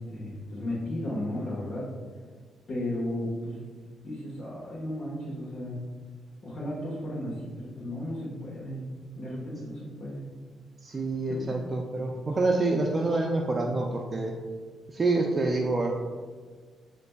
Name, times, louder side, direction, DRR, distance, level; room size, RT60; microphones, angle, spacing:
voice 1, 0.0-1.9 2.7-3.6 4.0-5.8 6.4-8.8 9.1-10.2 11.3-11.7 12.2-12.3, left 1 dB, 50° left, -8 dB, 1.2 m, -34 dB
voice 2, 10.8-14.3 14.9-15.9, right 2 dB, 30° right, 1 dB, 0.4 m, -27 dB
7.6 x 2.5 x 2.3 m, 1.5 s
cardioid pair, 90°, 0 cm